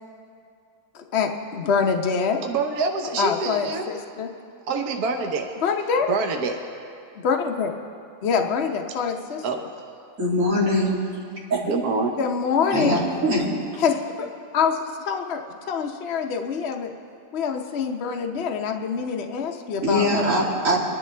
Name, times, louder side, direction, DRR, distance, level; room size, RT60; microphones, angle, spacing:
voice 1, 0.9-2.4 3.2-4.3 5.6-6.2 7.2-7.7 8.2-9.6 12.2-13.0 13.8-14.3 14.5-16.9 17.3-20.3, left 6 dB, 55° left, 3 dB, 0.7 m, -25 dB
voice 2, 2.4-3.9 4.7-5.5 6.1-6.6 9.4-9.6 11.6-12.2, right 4 dB, 60° right, 3 dB, 1.3 m, -26 dB
voice 3, 10.2-11.0 11.5-11.6 12.7-13.4 19.8-20.8, equal, 45° right, -6 dB, 2.9 m, -22 dB
23.5 x 11.0 x 3.3 m, 2.4 s
omnidirectional pair, 2.0 m